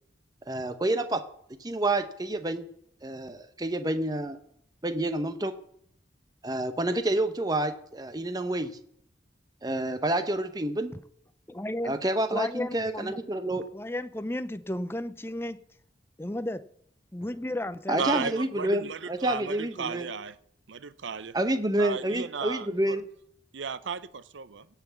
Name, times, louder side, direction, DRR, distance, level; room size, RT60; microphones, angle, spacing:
voice 1, 0.5-1.2 1.6-2.7 3.0-4.4 4.8-5.5 6.4-8.7 9.6-10.9 11.8-13.6 17.9-20.1 21.3-23.0, right 1 dB, 20° right, 0.8 m, -28 dB
voice 2, 11.5-12.0 12.3-13.2 13.5-15.6 16.2-16.6 17.1-18.1, left 1 dB, 10° left, 0.5 m, -33 dB
voice 3, 18.0-20.4 20.7-21.3 21.8-23.0 23.5-24.7, right 5 dB, 80° right, 0.7 m, -34 dB
17.0 x 5.9 x 7.0 m
head